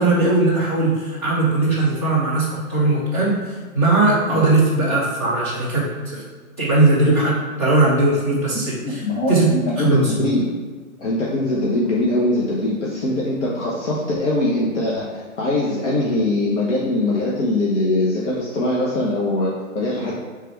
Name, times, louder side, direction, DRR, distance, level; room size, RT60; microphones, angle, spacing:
voice 1, 0.0-6.2 6.6-9.5 9.8-10.2, right 2 dB, 10° left, -11 dB, 0.5 m, -19 dB
voice 2, 8.8-9.3 9.6-10.5 11.0-15.1 15.4-20.1, left 2 dB, 55° left, -5 dB, 1.0 m, -22 dB
3.4 x 3.3 x 4.5 m, 1.5 s
hypercardioid pair, 165°, 42 cm